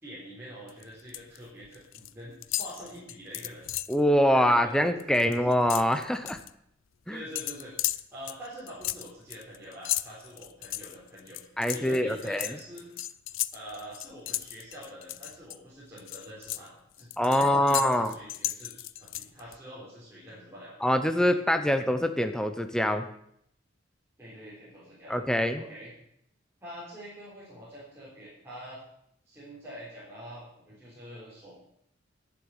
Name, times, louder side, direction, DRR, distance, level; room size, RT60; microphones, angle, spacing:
voice 1, 0.0-3.6 4.3-4.7 7.1-11.4 11.7-13.0 13.5-20.7 24.2-25.1 25.6-25.9 26.6-28.8 29.3-31.5, equal, 15° right, -9 dB, 3.9 m, -45 dB
sound 1, 0.7-1.4 1.6-2.1 2.4-4.0 4.4-4.6 4.9-6.5 7.4-15.6 16.0-19.6, left 15 dB, 85° left, 0.5 m, -35 dB
voice 2, 3.9-6.4 7.1-7.3 11.6-12.6 17.2-18.1 20.8-23.1 25.1-25.6, equal, 5° left, 8 dB, 0.7 m, -24 dB
11.5 x 7.2 x 8.9 m, 0.73 s
head